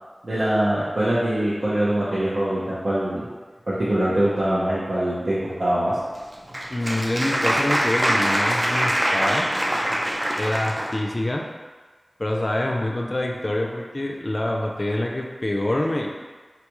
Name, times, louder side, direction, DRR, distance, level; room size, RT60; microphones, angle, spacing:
voice 1, 0.2-3.3 3.7-6.0, right 1 dB, 80° right, -11 dB, 0.7 m, -23 dB
Applause, 6.1-11.0, equal, 35° right, 0.4 m, -24 dB
voice 2, 6.7-9.5 10.3-11.5 12.2-16.1, left 1 dB, 45° left, 0 dB, 0.3 m, -26 dB
3.9 x 2.2 x 3.0 m, 1.4 s
wide cardioid pair, 55°, 0 cm